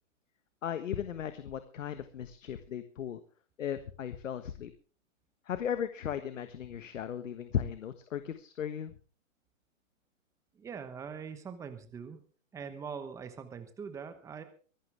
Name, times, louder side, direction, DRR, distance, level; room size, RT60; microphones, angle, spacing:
voice 1, 0.6-3.2 3.6-4.7 5.4-8.9, left 9 dB, 70° left, 10 dB, 1.5 m, -36 dB
voice 2, 10.5-12.2 12.5-14.4, right 6 dB, 10° right, 9 dB, 1.0 m, -42 dB
24.0 x 11.5 x 3.4 m, 0.39 s
hypercardioid pair, 145°, 40 cm